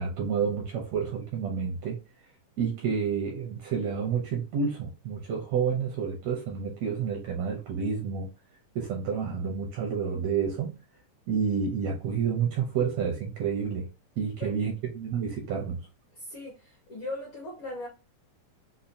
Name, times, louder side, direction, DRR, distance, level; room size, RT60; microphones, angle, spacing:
voice 1, 0.0-2.0 2.6-8.3 8.7-10.8 11.3-13.9 14.2-15.8, right 6 dB, 75° right, 1.6 m, -29 dB
voice 2, 16.1-17.9, left 2 dB, 75° left, 1.2 m, -39 dB
5.4 x 2.1 x 2.6 m
omnidirectional pair, 3.8 m